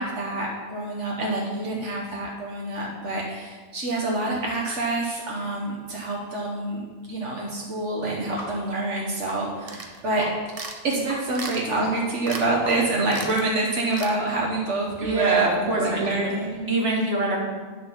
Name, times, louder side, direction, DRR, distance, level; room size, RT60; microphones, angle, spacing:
voice 1, 0.0-6.8 7.1-10.3 10.8-15.5 15.8-16.7, right 2 dB, 80° right, -3 dB, 1.5 m, -27 dB
sound 1, 8.4-8.5 8.8-8.9 9.3-9.4 9.8-9.9 10.2-10.3 10.6-10.7 11.1-11.2 11.5-11.6 11.8-11.9 12.2-12.3 12.6-13.0, left 1 dB, 40° left, 1.7 m, -37 dB
sound 2, 9.7-10.0 10.5-10.8 11.3-11.8 12.2-12.5 12.7-12.8 13.1-13.4 13.9-14.2, right 3 dB, 35° right, 0.7 m, -35 dB
voice 2, 15.0-16.3 16.7-17.4, right 1 dB, 60° right, -2 dB, 1.8 m, -25 dB
10.0 x 4.0 x 5.9 m, 1.5 s
omnidirectional pair, 1.2 m